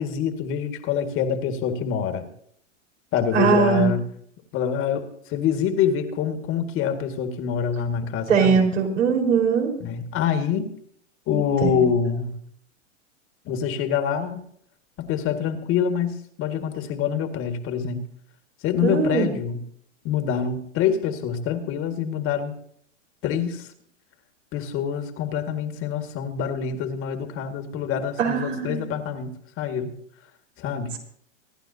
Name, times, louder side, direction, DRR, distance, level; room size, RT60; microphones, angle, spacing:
voice 1, 0.0-2.3 3.1-4.0 4.5-8.6 9.8-10.7 11.3-12.3 13.5-14.4 15.0-18.0 18.6-19.6 20.0-22.5 23.2-23.7 24.5-29.3 29.6-29.9 30.6-30.9, left 7 dB, 35° left, 7 dB, 1.9 m, -25 dB
voice 2, 3.3-3.9 8.3-9.7 11.3-11.8 18.8-19.3 28.2-28.9, right 6 dB, 80° right, 0 dB, 4.6 m, -21 dB
26.0 x 11.0 x 2.8 m, 0.66 s
hypercardioid pair, 120°, 37 cm